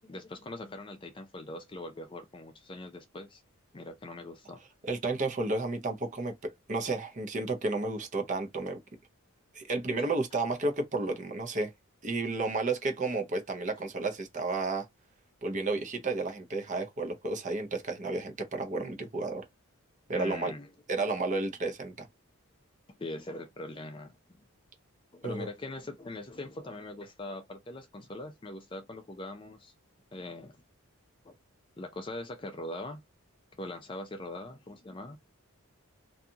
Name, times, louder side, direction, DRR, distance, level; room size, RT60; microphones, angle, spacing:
voice 1, 0.0-3.4 3.7-4.6 10.0-10.1 20.1-20.7 23.0-24.4 25.1-29.7 30.1-30.6 31.2-31.4 31.8-33.0 33.6-35.2, left 2 dB, 20° left, 0.4 m, -42 dB
voice 2, 4.8-6.3 6.7-8.8 9.5-11.7 12.0-14.9 15.4-19.4 20.1-20.5 20.9-22.1 25.2-25.5, right 3 dB, 35° right, 0.6 m, -32 dB
2.7 x 2.3 x 2.7 m
head